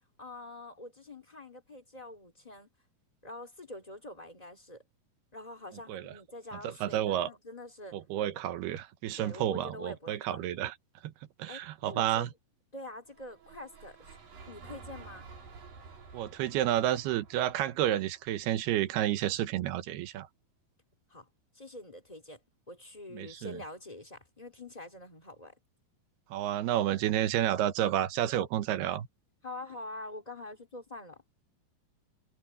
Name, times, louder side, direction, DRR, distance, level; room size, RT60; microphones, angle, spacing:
voice 1, 0.0-2.7 3.2-4.8 5.3-8.0 9.2-10.6 11.5-12.3 12.7-14.1 14.5-15.3 21.1-21.3 21.5-22.4 22.7-25.5 29.4-31.2, left 1 dB, 15° left, 1.5 m, -45 dB
voice 2, 6.6-7.3 7.9-10.7 11.0-11.1 11.4-12.3 16.1-20.3 23.1-23.6 26.3-29.1, right 12 dB, 90° right, 3.1 m, -30 dB
sound 1, 13.1-19.3, right 4 dB, 60° right, 5.9 m, -52 dB
omnidirectional pair, 4.5 m